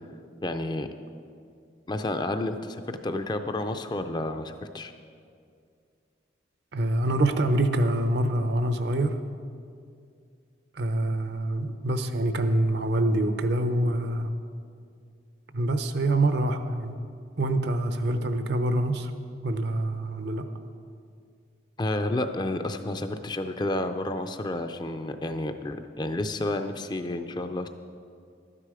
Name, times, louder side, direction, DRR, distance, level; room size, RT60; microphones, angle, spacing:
voice 1, 0.4-0.9 1.9-4.9 21.8-27.7, left 1 dB, 25° left, 8 dB, 0.4 m, -30 dB
voice 2, 6.7-9.2 10.7-14.3 15.5-16.9 17.4-19.1 19.4-20.5, right 1 dB, 60° right, 8 dB, 0.7 m, -25 dB
12.0 x 9.8 x 4.9 m, 2.3 s
head